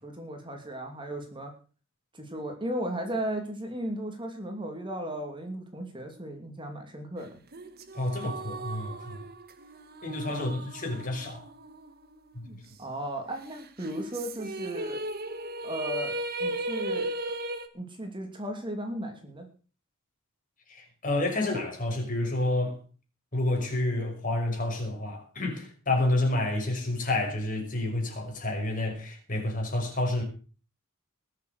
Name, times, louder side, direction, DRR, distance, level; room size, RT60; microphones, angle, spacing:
voice 1, 0.0-1.5 2.1-7.4 10.3-10.6 12.8-15.0 15.6-17.1 17.7-19.5, right 1 dB, 25° right, 2.8 m, -36 dB
sound 1, 7.5-12.1 12.5-12.6 13.8-17.7, right 1 dB, 45° right, 1.6 m, -36 dB
voice 2, 7.9-9.2 10.0-11.5 12.3-12.6 20.7-22.8 23.3-30.2, left 2 dB, 40° left, 5.8 m, -29 dB
20.5 x 7.7 x 6.6 m
head